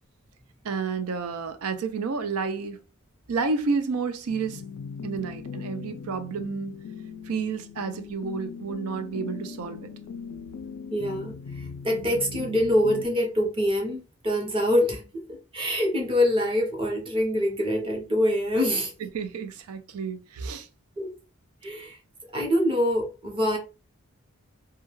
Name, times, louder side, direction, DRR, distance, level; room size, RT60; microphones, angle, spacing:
voice 1, 0.6-2.8 3.3-4.6 5.0-6.7 7.3-9.9 19.0-20.7, right 5 dB, 90° right, 0.5 m, -30 dB
sound 1, 4.3-13.0, left 6 dB, 70° left, 0.3 m, -39 dB
voice 2, 10.9-18.9 21.0-21.1 21.6-22.0 22.3-23.6, left 1 dB, 25° right, 0.7 m, -25 dB
2.3 x 2.2 x 3.0 m
head